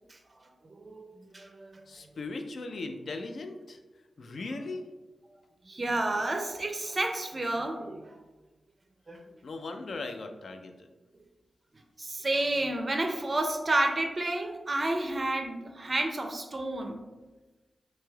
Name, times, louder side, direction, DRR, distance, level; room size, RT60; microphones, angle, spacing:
voice 1, 0.7-1.7 5.7-8.2 9.1-9.2 12.0-17.0, right 2 dB, 40° right, 4 dB, 0.4 m, -30 dB
voice 2, 1.9-3.8 4.2-4.8 9.4-10.9, left 3 dB, 70° left, 6 dB, 0.3 m, -38 dB
3.1 x 2.7 x 2.2 m, 1.1 s
cardioid pair, 50°, 0 cm